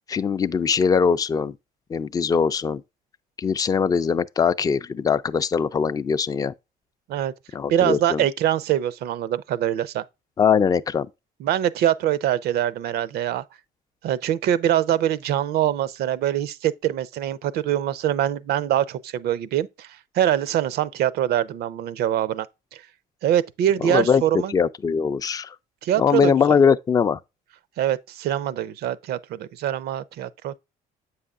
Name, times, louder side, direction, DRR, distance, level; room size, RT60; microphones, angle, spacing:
voice 1, 0.1-1.5 1.9-2.8 3.4-6.5 7.5-8.2 10.4-11.1 23.8-25.6 26.0-27.2, left 6 dB, 20° left, 0.3 m, -21 dB
voice 2, 7.7-10.0 11.4-13.4 14.0-19.9 20.1-22.5 22.7-22.8 23.2-24.5 25.8-26.6 27.8-30.6, right 11 dB, 70° right, 0.5 m, -24 dB
7.8 x 5.6 x 2.4 m
cardioid pair, 110°, 17 cm